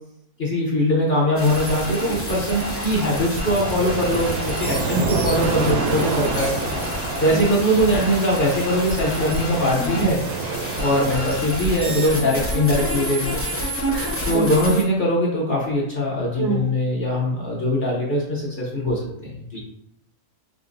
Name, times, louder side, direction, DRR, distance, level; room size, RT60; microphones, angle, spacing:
voice 1, 0.4-6.5 7.2-10.2 10.8-13.4 14.2-19.6, equal, 45° left, -5 dB, 0.8 m, -21 dB
sound 1, 1.4-14.8, equal, 15° left, 0.5 m, -28 dB
sound 2, 3.2-11.2, right 4 dB, 90° right, 1.2 m, -28 dB
voice 2, 9.8-10.1 13.9-14.4 16.4-16.6, right 4 dB, 65° right, -1 dB, 0.6 m, -27 dB
5.0 x 2.7 x 2.6 m, 0.75 s
omnidirectional pair, 1.7 m